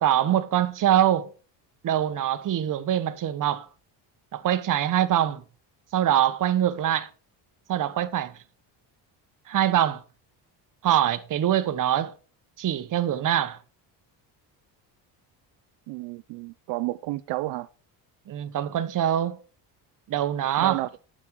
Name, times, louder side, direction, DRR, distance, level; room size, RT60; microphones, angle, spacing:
voice 1, 0.0-1.3 1.8-3.7 4.3-5.4 5.9-7.1 7.7-8.3 9.5-10.0 10.8-12.1 12.6-13.6 18.3-19.4 20.1-20.8, right 11 dB, 45° right, 1.0 m, -24 dB
voice 2, 15.9-17.7 20.6-20.9, right 18 dB, 75° right, 0.5 m, -31 dB
9.7 x 7.6 x 4.5 m
cardioid pair, 115°, 44 cm